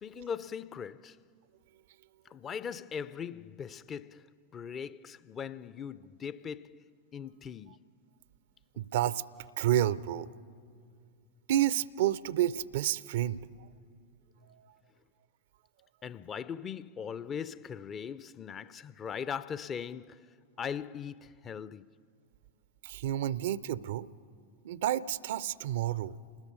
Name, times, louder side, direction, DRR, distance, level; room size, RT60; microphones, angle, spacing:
voice 1, 0.0-1.2 2.3-7.8 8.7-8.8 16.0-20.3 20.6-21.9, left 7 dB, 25° left, 0.5 m, -40 dB
voice 2, 8.8-9.2 9.6-10.3 11.5-13.4 22.8-24.1 24.6-26.1, right 12 dB, 55° right, 0.5 m, -30 dB
29.5 x 20.0 x 5.4 m
figure-of-eight pair, 90°, 0 cm